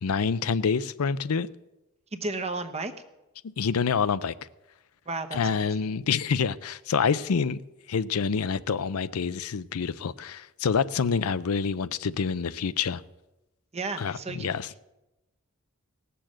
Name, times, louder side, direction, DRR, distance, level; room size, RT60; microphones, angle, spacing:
voice 1, 0.0-1.5 3.4-4.3 5.3-7.6 7.9-13.0 14.0-14.7, left 6 dB, 85° left, 0.5 m, -27 dB
voice 2, 2.1-2.9 5.1-5.7 13.7-14.5, right 3 dB, 30° right, 0.9 m, -33 dB
18.0 x 6.9 x 7.5 m
head